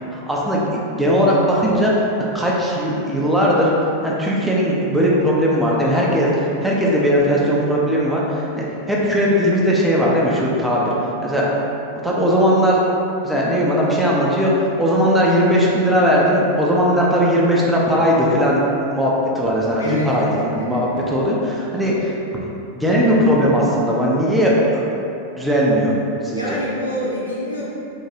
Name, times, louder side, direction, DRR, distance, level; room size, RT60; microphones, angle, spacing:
voice 1, 0.1-3.7 4.0-10.9 11.2-11.5 12.0-12.8 13.2-18.6 18.9-22.1 22.7-25.1 25.4-26.0 26.2-26.6, equal, 5° right, -5 dB, 0.4 m, -18 dB
voice 2, 19.8-21.2 21.5-21.9 26.3-27.6, equal, 80° left, -8 dB, 0.6 m, -28 dB
3.0 x 2.2 x 2.5 m, 2.8 s
figure-of-eight pair, 90°, 0 cm